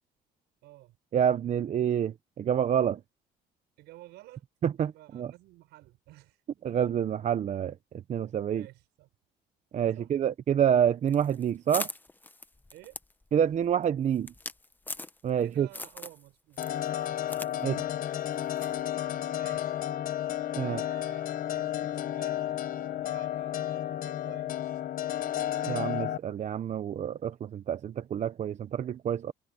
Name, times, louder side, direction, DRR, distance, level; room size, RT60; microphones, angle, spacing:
voice 1, 0.6-1.0 3.8-4.5 4.8-6.4 8.5-9.1 9.9-10.1 12.7-13.0 15.4-16.6 19.1-19.8 20.6-21.2 21.5-24.8, right 17 dB, 85° right, 6.1 m, -53 dB
voice 2, 1.1-3.0 4.6-5.3 6.6-7.8 8.1-8.7 9.7-11.9 13.3-14.3 15.2-15.7 17.6-17.8 20.6-20.8 25.7-29.3, right 9 dB, 45° right, 0.8 m, -28 dB
sound 1, 11.1-15.4 15.7-16.2 16.5-17.5 17.8-17.9 18.6-18.8, left 2 dB, 10° left, 1.0 m, -40 dB
sound 2, 16.6-26.2, left 12 dB, 55° left, 1.2 m, -32 dB
cardioid pair, 110°, 17 cm